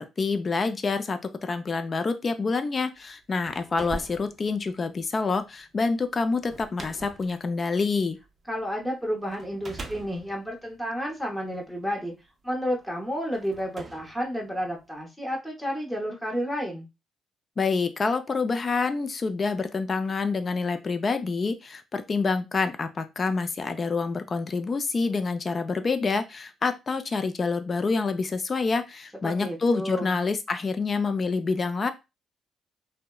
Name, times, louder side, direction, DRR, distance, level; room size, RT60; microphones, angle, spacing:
voice 1, 0.0-8.2 17.6-31.9, left 4 dB, 35° left, 9 dB, 0.4 m, -27 dB
sound 1, 3.1-8.7 9.3-11.8 12.6-12.7 13.3-15.0, right 3 dB, 30° right, 0.5 m, -44 dB
voice 2, 8.5-12.1 12.4-16.9 29.2-30.1, equal, 5° left, -1 dB, 0.7 m, -31 dB
2.8 x 2.1 x 2.2 m, 0.25 s
cardioid pair, 90°, 0 cm